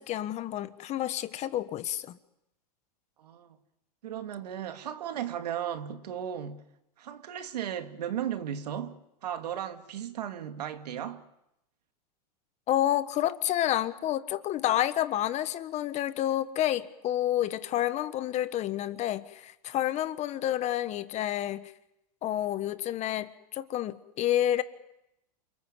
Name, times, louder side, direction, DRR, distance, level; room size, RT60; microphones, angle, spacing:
voice 1, 0.0-2.2 12.7-21.7 22.2-24.6, left 12 dB, 35° left, 1.3 m, -29 dB
voice 2, 4.0-6.6 7.0-11.2, right 9 dB, 90° right, 2.1 m, -35 dB
28.5 x 21.0 x 7.5 m
supercardioid pair, 130°, 20 cm